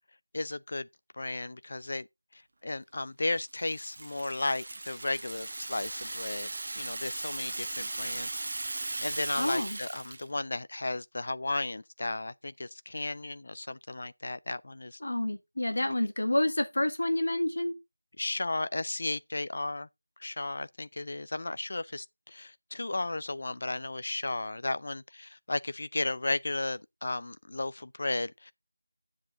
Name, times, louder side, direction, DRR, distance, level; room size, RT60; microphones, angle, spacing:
voice 1, 0.3-0.9 1.1-2.1 2.6-6.5 6.8-8.3 9.0-15.0 18.2-19.9 20.2-28.5, left 2 dB, 45° left, 0.5 m, -34 dB
Rattle (instrument), 3.3-10.3, right 2 dB, 40° right, 0.9 m, -38 dB
voice 2, 9.4-9.8 15.0-17.8, left 1 dB, 60° left, 1.7 m, -28 dB
10.5 x 7.4 x 3.6 m
figure-of-eight pair, 170°, 0 cm